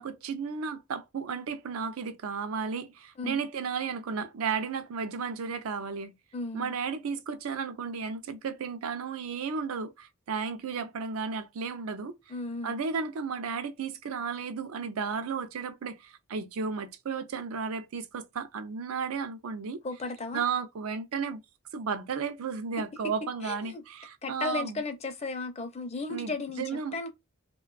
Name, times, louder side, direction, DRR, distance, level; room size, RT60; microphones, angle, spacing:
voice 1, 0.0-6.1 6.5-12.2 12.6-19.8 20.3-21.4 21.7-24.8 26.1-27.0, right 5 dB, 80° right, 0.4 m, -34 dB
voice 2, 6.3-6.7 12.3-12.7 19.8-20.4 23.4-23.8 24.2-27.1, left 3 dB, 30° left, 0.4 m, -35 dB
2.5 x 2.2 x 2.2 m
head